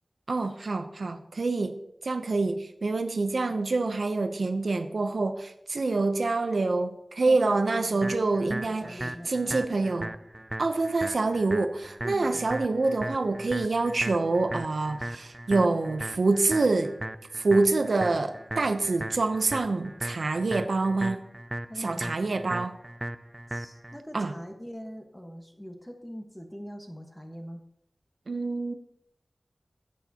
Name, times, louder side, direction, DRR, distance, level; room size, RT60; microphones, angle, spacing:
voice 1, 0.3-10.1 10.6-17.0 17.3-21.2 21.8-22.8 24.1-24.3 28.3-28.7, right 3 dB, 75° right, 8 dB, 0.7 m, -26 dB
voice 2, 7.2-9.7 12.1-12.4 21.7-22.6 23.5-27.6, equal, 10° left, 3 dB, 1.3 m, -43 dB
sound 1, 8.0-24.0, right 1 dB, 20° right, 0.4 m, -37 dB
14.0 x 8.5 x 2.9 m, 0.77 s
wide cardioid pair, 65°, 0 cm